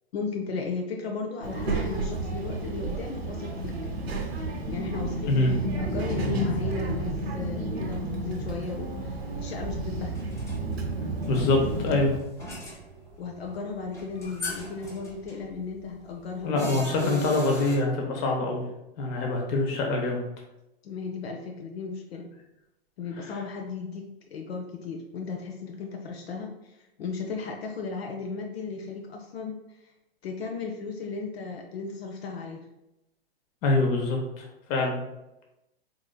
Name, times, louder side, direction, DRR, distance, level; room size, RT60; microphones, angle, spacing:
voice 1, 0.1-3.8 4.7-10.1 13.2-16.8 20.8-22.3 23.0-24.0 24.3-29.9 30.2-32.7, left 4 dB, 75° left, 2 dB, 0.6 m, -35 dB
Child speech kid speaking, 1.4-12.2, right 2 dB, 85° right, 0.8 m, -31 dB
sound 1, 10.0-17.8, equal, 10° left, 0.9 m, -40 dB
voice 2, 11.3-12.2 16.4-18.7 19.0-20.2 23.3-23.4 33.6-35.0, left 2 dB, 40° left, 1 dB, 0.9 m, -25 dB
3.8 x 2.9 x 2.2 m, 0.92 s
hypercardioid pair, 115°, 31 cm